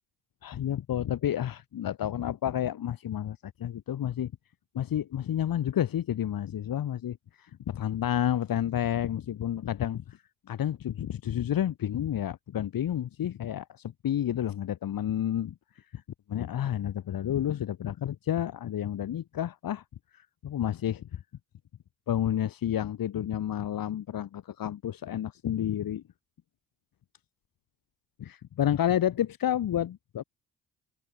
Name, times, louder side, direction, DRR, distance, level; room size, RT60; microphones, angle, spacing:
voice 1, 0.4-4.3 4.7-10.2 10.5-16.0 16.3-19.8 20.1-21.2 22.1-26.0 28.2-30.2, left 11 dB, 50° left, 3.1 m, -30 dB
figure-of-eight pair, 45°, 43 cm